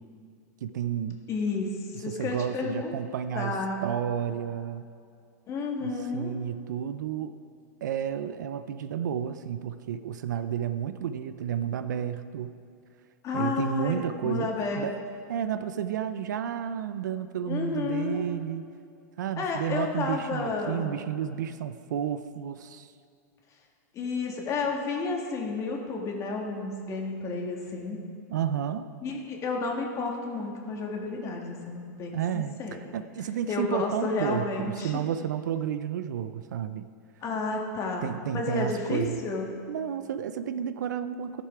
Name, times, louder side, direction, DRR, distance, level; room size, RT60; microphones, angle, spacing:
voice 1, 0.6-1.2 1.9-3.5 3.8-4.9 5.8-7.3 7.8-12.5 13.3-14.9 15.3-18.7 19.2-22.9 28.3-28.9 32.1-32.5 32.9-36.9 38.0-39.2 39.7-41.4, right 9 dB, 80° right, 11 dB, 0.5 m, -31 dB
voice 2, 1.3-2.9 3.4-3.9 5.5-6.3 13.2-14.9 17.5-18.2 19.4-20.9 23.9-28.1 29.0-32.8 33.5-35.0 37.2-39.5, left 3 dB, 30° left, 1 dB, 1.8 m, -31 dB
14.0 x 6.8 x 4.8 m, 2.4 s
hypercardioid pair, 125°, 10 cm